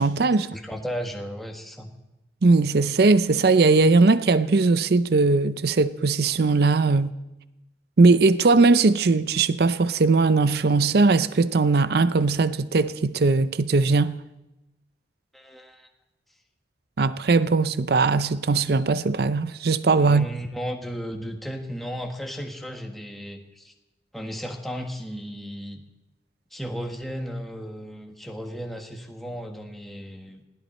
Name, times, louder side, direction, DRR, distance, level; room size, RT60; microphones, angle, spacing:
voice 1, 0.0-0.5 2.4-7.1 8.0-14.2 17.0-20.3, right 3 dB, 60° right, 0.5 m, -19 dB
voice 2, 0.5-1.9 15.3-15.9 20.0-23.7 24.1-25.8 26.5-30.4, equal, ahead, 1.4 m, -35 dB
20.5 x 16.5 x 4.3 m
head